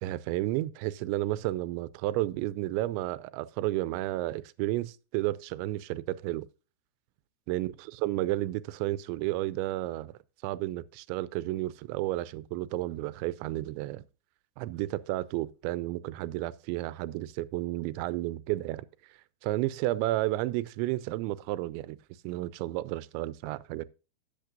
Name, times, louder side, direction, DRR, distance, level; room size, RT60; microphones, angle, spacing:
voice 1, 0.0-6.5 7.5-10.2 10.4-14.0 14.6-18.9 19.4-22.0 22.2-23.9, right 16 dB, 85° right, 2.8 m, -32 dB
13.0 x 8.6 x 2.5 m
omnidirectional pair, 5.3 m